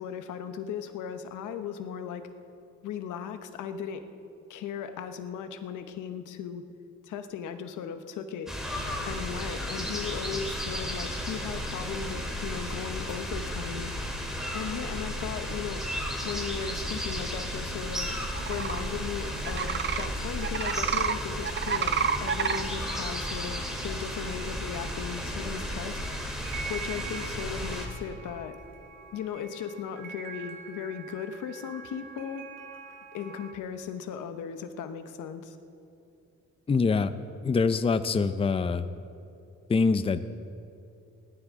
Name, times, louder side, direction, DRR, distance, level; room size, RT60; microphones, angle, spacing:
voice 1, 0.0-2.2 2.8-4.0 4.5-6.6 7.0-8.5 9.0-13.9 14.5-15.8 16.2-18.1 18.5-26.0 26.7-28.6 29.1-32.4 33.1-35.6, left 7 dB, 85° left, 8 dB, 1.0 m, -37 dB
sound 1, 8.5-27.9, equal, ahead, 2.8 m, -34 dB
sound 2, 18.1-33.5, right 6 dB, 90° right, 2.0 m, -46 dB
sound 3, 18.3-18.8 19.4-20.1 20.4-21.1 21.4-22.6, right 7 dB, 40° right, 0.7 m, -28 dB
voice 2, 36.7-37.1 37.4-38.8 39.7-40.2, left 4 dB, 20° left, 11 dB, 0.5 m, -24 dB
19.0 x 13.0 x 3.7 m, 2.6 s
cardioid pair, 90°, 30 cm